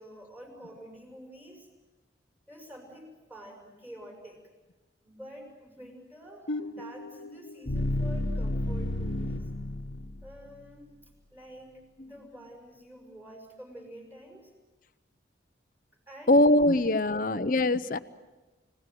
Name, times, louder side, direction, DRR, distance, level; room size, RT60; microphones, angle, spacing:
voice 1, 0.0-1.7 2.5-4.4 5.0-9.5 10.2-10.9 11.3-14.5 16.1-16.6 17.0-17.4, equal, 10° right, 1 dB, 6.1 m, -48 dB
sound 1, 6.5-10.5, left 1 dB, 80° left, 1.4 m, -32 dB
voice 2, 16.3-18.0, left 1 dB, 45° left, 12 dB, 0.8 m, -22 dB
30.0 x 18.0 x 7.7 m, 1.2 s
head